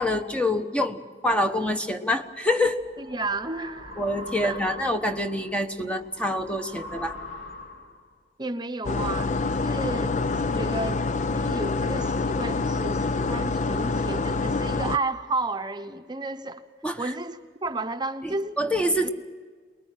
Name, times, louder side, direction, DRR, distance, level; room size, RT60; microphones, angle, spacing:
voice 1, 0.0-2.8 4.0-7.2 16.8-17.0 18.2-19.1, left 1 dB, 5° left, 6 dB, 1.0 m, -26 dB
sound 1, 2.3-8.1, left 2 dB, 85° left, 3.2 m, -42 dB
voice 2, 3.0-4.0 4.4-4.8 8.4-11.0 11.3-16.6 17.0-18.6 19.0-19.1, right 2 dB, 25° right, 7 dB, 0.9 m, -32 dB
sound 2, 8.8-15.0, left 3 dB, 45° left, 0.6 m, -26 dB
23.5 x 21.0 x 7.5 m, 1.6 s
head